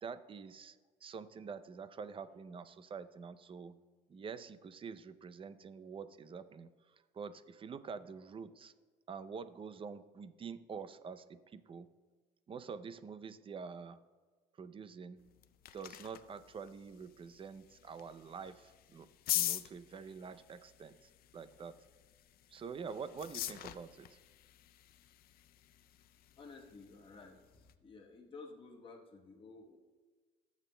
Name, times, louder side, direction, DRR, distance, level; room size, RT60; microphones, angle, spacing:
voice 1, 0.0-3.8 4.1-8.7 9.1-11.9 12.5-14.0 14.6-15.3 15.7-19.1 19.3-21.8 22.5-24.2, right 5 dB, 30° right, 13 dB, 0.5 m, -47 dB
sound 1, 15.2-27.8, left 13 dB, 60° left, 0.5 m, -44 dB
voice 2, 26.4-29.8, left 3 dB, 30° left, 0 dB, 1.1 m, -53 dB
18.5 x 7.3 x 2.2 m, 1.4 s
cardioid pair, 110°, 17 cm